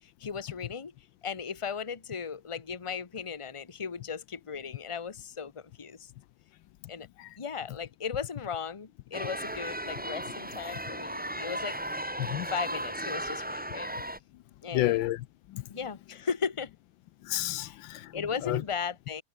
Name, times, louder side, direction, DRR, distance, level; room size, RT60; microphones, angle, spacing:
voice 1, 0.0-0.9 1.2-6.1 6.9-7.1 7.4-12.0 12.5-13.9 14.6-15.0 15.7-16.7 17.6-17.8 18.1-19.2, left 6 dB, 20° left, 1.1 m, -36 dB
sound 1, 9.1-14.2, right 1 dB, 5° right, 1.3 m, -36 dB
voice 2, 14.7-15.6 17.2-18.6, left 15 dB, 80° left, 1.4 m, -31 dB
omnidirectional pair, 2.1 m